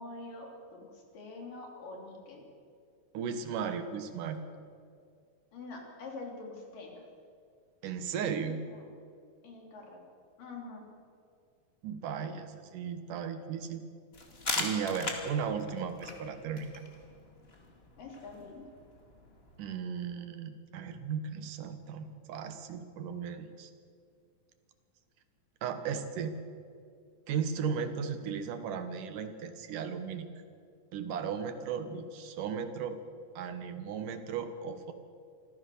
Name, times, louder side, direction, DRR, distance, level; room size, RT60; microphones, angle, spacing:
voice 1, 0.0-2.4 5.5-7.1 8.4-8.8 9.4-10.0 10.4-10.9 18.0-18.6, left 3 dB, 80° left, 1 dB, 4.8 m, -45 dB
voice 2, 3.1-4.4 7.8-8.6 11.8-13.8 14.5-16.8 19.6-23.7 25.6-26.4 27.3-30.3 30.9-33.0 33.4-34.9, right 6 dB, 75° right, 9 dB, 2.9 m, -36 dB
sound 1, 14.1-19.7, left 2 dB, 20° left, 1.8 m, -40 dB
25.5 x 15.0 x 7.0 m, 2.3 s
omnidirectional pair, 3.8 m